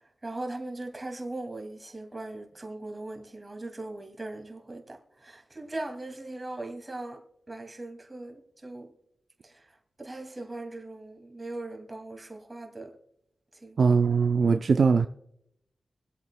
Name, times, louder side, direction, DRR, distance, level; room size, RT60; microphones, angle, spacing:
voice 1, 0.2-7.2 7.5-8.9 9.4-9.7 10.0-12.9 13.5-14.0, right 2 dB, 25° right, 2.3 m, -39 dB
voice 2, 13.8-15.1, right 5 dB, 65° right, 0.5 m, -21 dB
24.5 x 8.2 x 2.2 m
cardioid pair, 70°, 0 cm